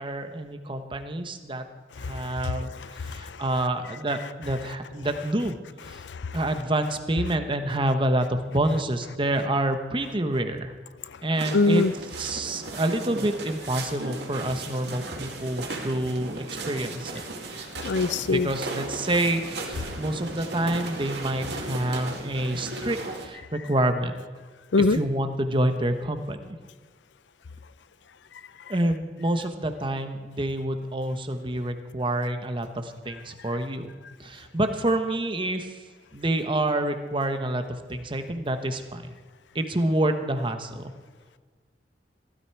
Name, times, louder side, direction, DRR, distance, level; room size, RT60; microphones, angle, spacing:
voice 1, 0.0-1.7 2.0-5.6 5.8-6.0 6.3-10.7 11.2-11.8 12.2-17.2 18.3-24.1 24.9-26.4 28.7-33.9 34.2-35.8 36.1-39.2 39.5-40.9, right 1 dB, 30° right, 7 dB, 1.1 m, -27 dB
voice 2, 2.0-2.3 3.0-3.4 6.0-6.4 11.5-11.9 17.8-18.5 24.7-25.0, left 3 dB, 90° left, 16 dB, 0.5 m, -23 dB
sound 1, 11.3-23.3, right 2 dB, 70° right, 2.2 m, -36 dB
16.0 x 12.5 x 4.7 m, 1.5 s
head